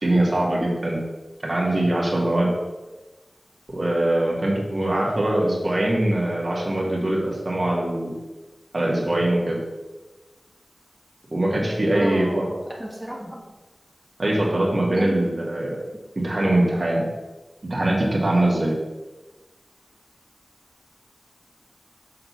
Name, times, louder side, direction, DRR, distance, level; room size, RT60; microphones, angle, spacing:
voice 1, 0.0-1.0 1.4-2.5 3.7-8.1 8.7-9.6 11.3-12.5 14.2-15.8 16.2-17.1 17.6-18.8, right 1 dB, 55° right, -3 dB, 1.9 m, -22 dB
voice 2, 11.9-13.4 14.9-15.3, equal, 10° right, -4 dB, 1.6 m, -31 dB
6.6 x 3.9 x 6.0 m, 1.2 s
wide cardioid pair, 65°, 0 cm